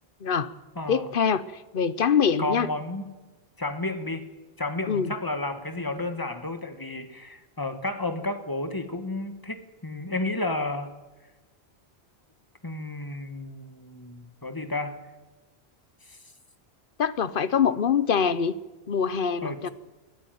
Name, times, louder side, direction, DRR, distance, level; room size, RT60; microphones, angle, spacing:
voice 1, 0.2-0.5 0.9-2.7 4.9-5.1 17.0-18.6 18.9-19.7, left 7 dB, 60° left, 1.0 m, -24 dB
voice 2, 0.7-1.1 2.4-3.1 3.6-4.3 4.6-10.9 12.6-15.0 16.1-16.2 19.4-19.7, left 2 dB, 20° left, 1.6 m, -32 dB
22.0 x 13.5 x 9.3 m
omnidirectional pair, 1.1 m